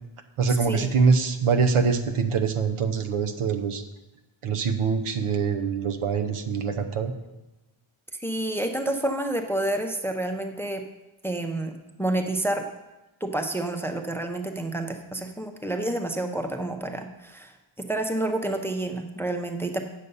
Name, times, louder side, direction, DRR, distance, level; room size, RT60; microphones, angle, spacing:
voice 1, 0.4-3.8 4.4-7.1, right 5 dB, 80° right, 8 dB, 0.9 m, -24 dB
voice 2, 8.2-10.8 11.2-11.7 12.0-12.6 13.2-17.5 17.8-19.8, right 1 dB, 5° left, 5 dB, 0.5 m, -29 dB
8.2 x 6.6 x 5.4 m, 1.0 s
wide cardioid pair, 145°, 50 cm